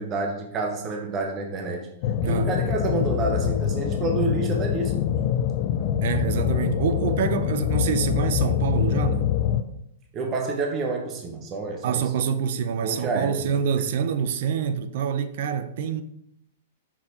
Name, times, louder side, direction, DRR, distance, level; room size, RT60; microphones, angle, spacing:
voice 1, 0.0-1.9 2.3-5.0 10.1-12.1 12.8-13.4, right 3 dB, 25° right, 1.0 m, -28 dB
sound 1, 2.0-9.6, left 10 dB, 45° left, 0.5 m, -24 dB
voice 2, 6.0-9.3 11.8-16.0, right 7 dB, 60° right, 0.6 m, -26 dB
6.2 x 4.2 x 5.0 m
hypercardioid pair, 145°, 0 cm